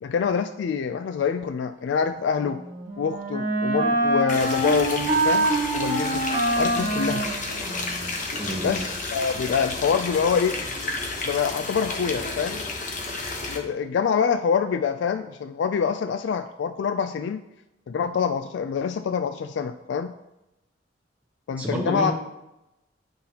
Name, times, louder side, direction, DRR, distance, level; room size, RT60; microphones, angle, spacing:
voice 1, 0.0-2.6 3.0-5.5 5.7-6.3 6.6-7.3 8.6-10.6 11.2-12.6 13.5-17.4 17.9-20.1 21.5-22.1, left 6 dB, 70° left, 9 dB, 0.3 m, -25 dB
Wind instrument woodwind instrument, 2.4-8.2, right 2 dB, 45° right, 1.4 m, -25 dB
sound 1, 4.3-13.6, left 3 dB, 45° left, 1.0 m, -32 dB
voice 2, 8.4-8.8 21.6-22.1, equal, 10° right, -2 dB, 0.8 m, -29 dB
9.0 x 5.7 x 2.8 m, 0.94 s
head